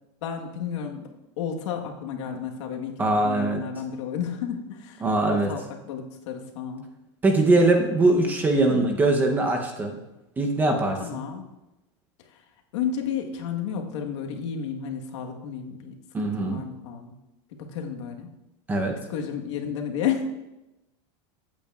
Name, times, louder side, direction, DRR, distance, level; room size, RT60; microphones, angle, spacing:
voice 1, 0.2-1.1 1.4-6.9 8.7-8.9 11.0-11.5 12.3-12.4 12.7-17.1 17.6-18.3 19.1-20.3, left 7 dB, 70° left, 3 dB, 1.3 m, -32 dB
voice 2, 3.0-3.6 5.0-5.5 7.2-10.0 10.4-11.2 16.1-16.6 18.7-19.0, right 2 dB, 10° right, 2 dB, 0.7 m, -22 dB
15.0 x 8.4 x 2.4 m, 0.97 s
supercardioid pair, 170°, 16 cm